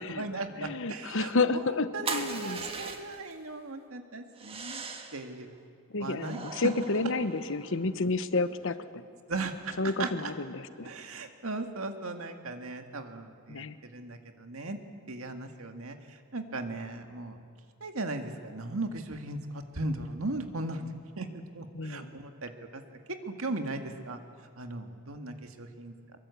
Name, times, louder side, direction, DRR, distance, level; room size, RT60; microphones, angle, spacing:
voice 1, 0.1-4.8 5.1-5.5 6.0-6.7 9.3-10.3 10.8-14.8 15.1-17.4 17.8-21.3 21.5-22.8 23.1-24.2 24.6-25.9, right 2 dB, 75° right, 6 dB, 2.0 m, -37 dB
voice 2, 0.6-2.6 5.9-9.0 9.8-10.9 13.5-13.8 21.7-22.1, left 3 dB, 65° left, 12 dB, 1.0 m, -30 dB
sound 1, 2.1-3.3 4.4-5.3 6.2-7.9, right 4 dB, 25° right, 1.6 m, -39 dB
23.5 x 22.5 x 8.4 m, 2.2 s
head